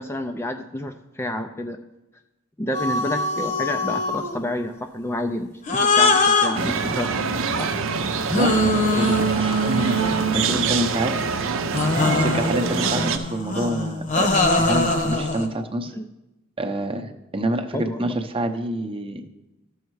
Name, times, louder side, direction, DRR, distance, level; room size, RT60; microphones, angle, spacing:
voice 1, 0.0-1.8 2.6-7.1 7.6-7.7 15.9-16.0 17.7-18.1, left 1 dB, 10° left, 5 dB, 0.4 m, -29 dB
sound 1, 2.7-4.4 5.7-7.5 8.3-10.8 11.7-15.5, left 2 dB, 35° left, 1.0 m, -22 dB
sound 2, 6.5-13.2, right 5 dB, 65° right, 0.7 m, -25 dB
voice 2, 8.3-11.1 12.0-15.9 16.6-19.2, right 1 dB, 25° right, 6 dB, 0.7 m, -27 dB
13.0 x 6.5 x 4.7 m, 0.98 s
head